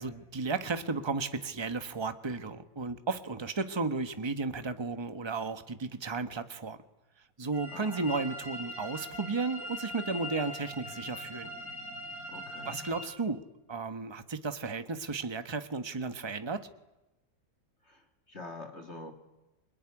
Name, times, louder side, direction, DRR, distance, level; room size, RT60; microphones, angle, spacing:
voice 1, 0.0-6.8 7.4-11.5 12.6-13.4 13.7-16.7, right 4 dB, 20° right, 9 dB, 1.1 m, -34 dB
sound 1, 7.5-13.0, left 1 dB, 75° left, 5.6 m, -41 dB
voice 2, 7.7-8.1 12.3-12.8 17.9-18.0 18.3-19.1, left 2 dB, 40° left, 5 dB, 2.5 m, -45 dB
28.0 x 21.0 x 9.9 m, 1.0 s
omnidirectional pair, 1.8 m